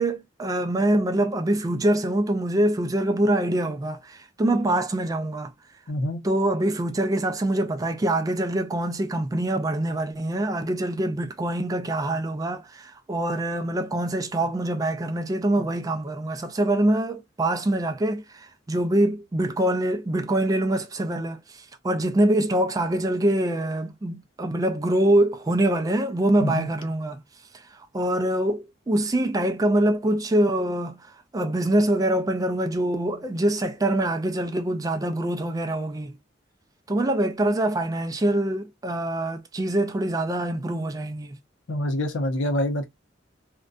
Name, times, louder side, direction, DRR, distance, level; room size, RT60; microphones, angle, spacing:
voice 1, 0.0-5.5 6.2-27.2 27.9-31.0 31.3-36.2 36.9-41.4, right 1 dB, 20° right, 0.3 m, -24 dB
voice 2, 5.9-6.2 26.4-26.7 41.7-42.9, left 1 dB, 85° left, 0.6 m, -26 dB
2.6 x 2.2 x 2.3 m
head